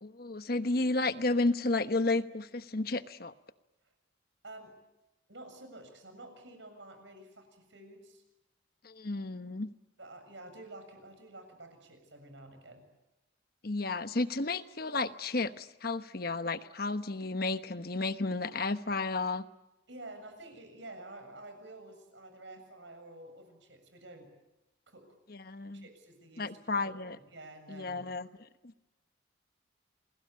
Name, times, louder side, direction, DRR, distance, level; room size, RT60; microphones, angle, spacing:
voice 1, 0.0-3.3 8.8-9.7 13.6-19.5 25.3-25.8 26.4-27.2 27.7-28.3 28.6-28.9, left 3 dB, 50° left, 11 dB, 1.1 m, -32 dB
voice 2, 4.4-4.7 5.3-8.2 10.0-12.8 19.9-24.3 24.9-25.1 25.7-28.1, right 2 dB, 70° right, 7 dB, 7.3 m, -50 dB
28.5 x 21.5 x 8.7 m, 1.0 s
head